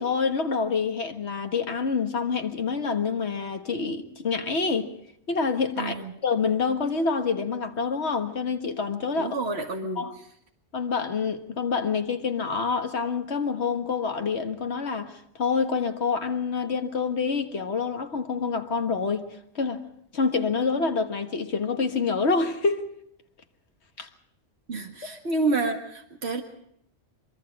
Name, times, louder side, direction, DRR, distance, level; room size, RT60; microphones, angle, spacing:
voice 1, 0.0-4.9 5.3-9.4 9.9-10.1 10.7-19.3 19.5-19.8 20.1-22.9 24.0-24.1, left 5 dB, 85° left, 1.8 m, -27 dB
voice 2, 5.8-6.1 9.2-10.1 24.7-26.4, right 3 dB, 75° right, 2.2 m, -29 dB
24.5 x 23.0 x 4.8 m
omnidirectional pair, 1.1 m